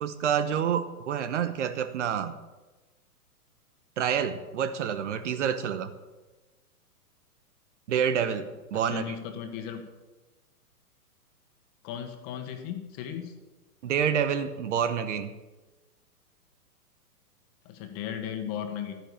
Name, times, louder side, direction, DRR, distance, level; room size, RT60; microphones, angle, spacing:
voice 1, 0.0-2.4 4.0-5.9 7.9-9.1 13.8-15.3, right 8 dB, 50° right, 11 dB, 1.1 m, -28 dB
voice 2, 8.7-9.8 11.8-13.4 17.7-18.9, left 9 dB, 30° left, 6 dB, 1.8 m, -36 dB
12.5 x 9.9 x 7.0 m, 1.2 s
figure-of-eight pair, 115°, 45 cm